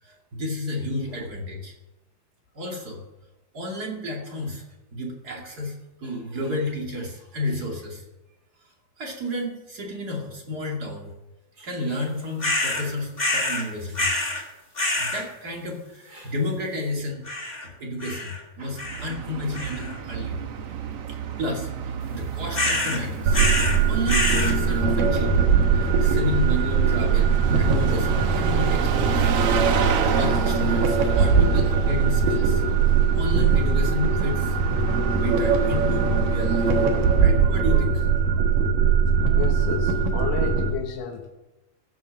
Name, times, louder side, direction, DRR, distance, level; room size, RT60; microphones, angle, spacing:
voice 1, 0.0-1.7 2.5-3.0 3.5-4.6 4.9-8.0 9.0-11.1 11.6-14.2 15.0-17.2 17.6-20.4 21.4-23.4 23.9-29.3 30.0-32.6 33.2-34.6 35.1-36.7 37.2-38.1, left 1 dB, 30° right, 0 dB, 2.6 m, -31 dB
sound 1, 12.4-12.9 13.2-13.6 13.9-14.4 14.8-15.2 17.3-17.7 18.0-18.4 18.8-19.2 19.5-20.0 22.5-23.0 23.3-23.8 24.1-24.6, left 2 dB, 15° left, 1.9 m, -26 dB
Bus, 18.8-37.4, right 7 dB, 65° right, 1.6 m, -30 dB
sound 2, 23.3-40.7, right 5 dB, 90° right, 3.2 m, -21 dB
voice 2, 39.4-41.3, left 9 dB, 80° left, 2 dB, 2.6 m, -32 dB
14.5 x 7.5 x 7.4 m, 1.0 s
omnidirectional pair, 3.8 m